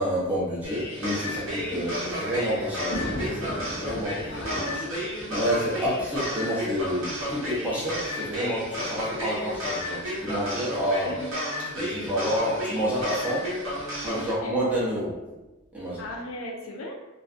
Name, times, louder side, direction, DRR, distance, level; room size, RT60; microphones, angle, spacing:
voice 1, 0.0-4.3 4.7-4.8 5.3-11.1 11.8-13.5 14.0-15.1 15.7-16.0, equal, 10° right, -7 dB, 0.7 m, -29 dB
sound 1, 0.6-14.3, equal, 75° right, 0.8 m, -32 dB
voice 2, 1.7-2.0 4.3-5.0 11.1-11.4 14.1-14.5 16.0-16.9, left 1 dB, 90° left, 0 dB, 0.5 m, -37 dB
Thunder, 1.7-6.8 7.6-7.7 7.9-8.0 9.1-9.4, equal, 40° left, 0.5 m, -38 dB
2.5 x 2.3 x 2.4 m, 1.1 s
head